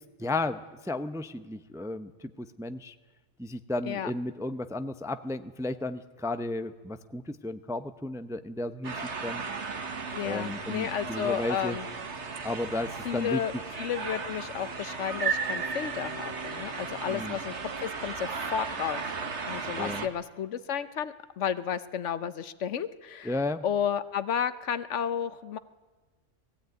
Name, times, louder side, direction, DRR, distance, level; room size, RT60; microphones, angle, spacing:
voice 1, 0.2-2.9 3.4-8.9 9.2-9.4 10.2-11.8 12.4-13.4 17.1-17.4 19.8-20.1 23.2-23.6, left 2 dB, 5° right, 10 dB, 0.5 m, -33 dB
sound 1, 8.8-20.1, right 5 dB, 65° right, 1.8 m, -35 dB
voice 2, 10.1-11.9 13.0-13.5 13.8-19.0 19.5-23.3 23.6-25.6, left 8 dB, 70° left, 13 dB, 1.1 m, -32 dB
19.5 x 16.0 x 9.3 m, 1.3 s
omnidirectional pair, 1.3 m